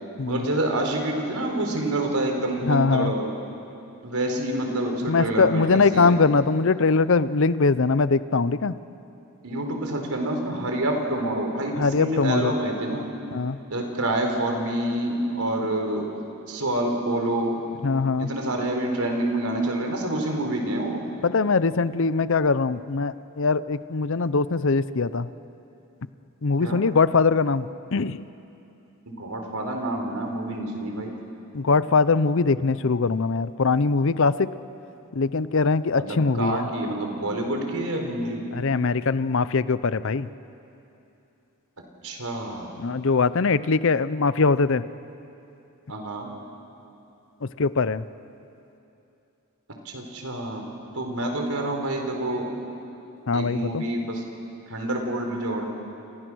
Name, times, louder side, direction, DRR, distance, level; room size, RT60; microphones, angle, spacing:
voice 1, 0.3-3.3 4.0-6.2 9.4-13.1 13.7-16.2 16.5-17.7 18.2-21.1 26.6-26.8 29.1-31.2 35.9-38.5 42.0-42.7 45.9-46.3 49.8-50.7 50.9-52.5 53.3-54.2 54.7-55.7, right 1 dB, 80° right, 3 dB, 4.2 m, -27 dB
voice 2, 2.6-3.1 5.1-8.7 11.8-12.5 13.3-13.6 17.8-18.3 21.2-25.3 26.4-28.3 31.5-34.5 35.1-36.6 38.5-40.3 42.8-44.8 47.4-48.0 53.3-53.8, left 4 dB, 60° left, 15 dB, 0.6 m, -22 dB
29.5 x 28.5 x 6.3 m, 2.9 s
head